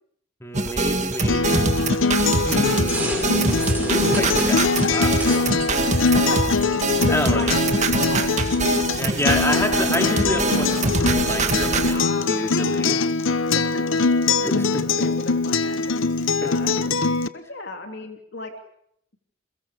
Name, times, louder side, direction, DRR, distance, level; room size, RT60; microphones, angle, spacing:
voice 1, 0.4-3.5 3.8-5.7 7.1-7.5 9.0-13.0 14.4-15.1 16.4-16.8, left 1 dB, 15° left, 3 dB, 3.3 m, -29 dB
sound 1, 0.5-12.0, right 2 dB, 35° right, 2.0 m, -24 dB
Acoustic guitar, 1.3-17.3, left 4 dB, 70° left, 0.9 m, -22 dB
sound 2, 1.8-7.1, right 1 dB, 10° right, 5.2 m, -31 dB
voice 2, 5.8-6.4 6.8-8.9 9.2-10.2 11.9-12.8 13.2-13.8 14.3-14.4 14.7-16.9 17.3-18.5, left 2 dB, 55° left, 4 dB, 3.0 m, -36 dB
30.0 x 22.5 x 5.1 m, 0.68 s
head